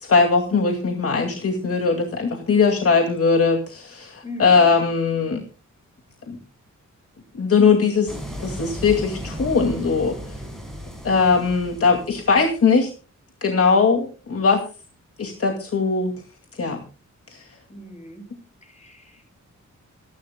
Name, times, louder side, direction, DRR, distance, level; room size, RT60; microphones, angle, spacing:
voice 1, 0.0-5.4 6.3-6.4 7.3-10.4 11.0-12.9 13.4-14.6 15.2-16.1 16.6-16.8 17.3-17.4, left 5 dB, 50° left, 4 dB, 2.3 m, -20 dB
voice 2, 4.2-4.8 17.7-18.3 18.6-19.3, left 1 dB, 25° left, 5 dB, 6.7 m, -40 dB
sound 1, 8.1-12.6, equal, ahead, 6.0 m, -35 dB
27.0 x 11.5 x 2.2 m, 0.34 s
wide cardioid pair, 150°, 30 cm